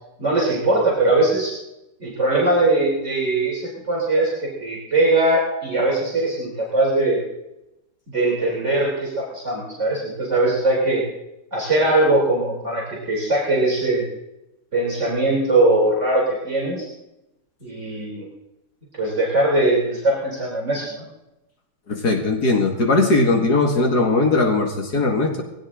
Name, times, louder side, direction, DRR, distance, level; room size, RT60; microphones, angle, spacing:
voice 1, 0.2-1.5 2.0-3.6 3.9-7.2 8.1-11.0 11.5-14.0 14.7-16.9 17.6-18.3 18.9-21.0, right 2 dB, 45° right, -5 dB, 3.9 m, -20 dB
voice 2, 21.9-25.4, left 3 dB, 70° left, 1 dB, 2.5 m, -19 dB
20.0 x 17.0 x 3.8 m, 0.92 s
omnidirectional pair, 1.8 m